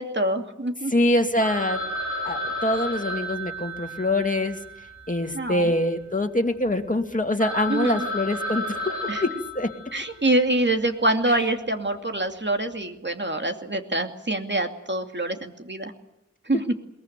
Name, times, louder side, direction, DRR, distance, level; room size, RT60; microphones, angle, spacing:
voice 1, 0.0-0.9 5.3-5.7 7.7-8.1 9.1-9.2 9.9-15.9 16.5-16.6, right 1 dB, 40° right, 5 dB, 2.6 m, -25 dB
voice 2, 0.9-1.8 2.2-4.6 5.1-8.8 9.2-9.3 9.5-9.7, left 1 dB, 25° left, 4 dB, 2.5 m, -24 dB
Telephone, 1.4-5.7 6.0-6.1 6.7-6.8 7.1-7.2 7.4-10.4, equal, 80° right, 5.8 m, -32 dB
22.0 x 19.5 x 9.1 m, 0.89 s
wide cardioid pair, 45°, 29 cm